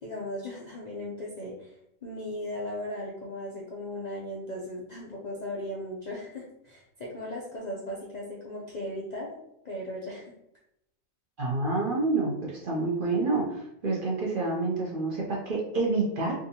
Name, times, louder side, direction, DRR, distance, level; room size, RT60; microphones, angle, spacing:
voice 1, 0.0-1.7 2.0-9.4 9.6-10.3, left 1 dB, 55° left, -4 dB, 0.5 m, -37 dB
voice 2, 11.4-16.3, right 3 dB, 50° right, -3 dB, 0.7 m, -28 dB
3.5 x 2.6 x 2.8 m, 0.80 s
omnidirectional pair, 1.4 m